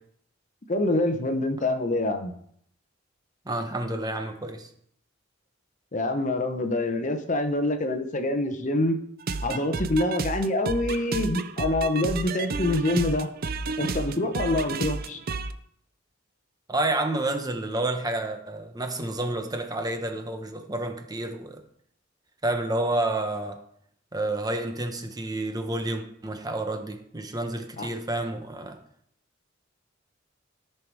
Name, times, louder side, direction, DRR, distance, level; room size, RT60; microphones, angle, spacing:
voice 1, 0.7-2.3 5.9-9.0 9.4-13.3 13.8-15.2 27.8-27.9, left 2 dB, 40° left, 7 dB, 0.9 m, -26 dB
voice 2, 3.4-4.7 16.7-21.6 22.4-23.6 24.1-28.8, right 2 dB, 20° right, 5 dB, 1.0 m, -29 dB
sound 1, 9.2-15.5, right 3 dB, 50° right, 0.6 m, -31 dB
13.5 x 5.7 x 4.7 m, 0.68 s
head